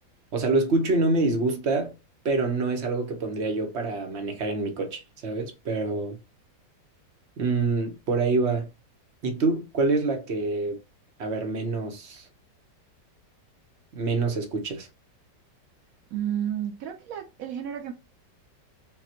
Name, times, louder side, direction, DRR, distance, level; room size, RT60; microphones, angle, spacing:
voice 1, 0.3-1.9 2.2-6.2 7.4-8.7 9.2-10.8 11.2-12.2 13.9-14.9, right 3 dB, 45° right, 0.9 m, -26 dB
voice 2, 16.1-17.9, right 10 dB, 80° right, 0.7 m, -31 dB
5.8 x 2.3 x 2.8 m
omnidirectional pair, 2.0 m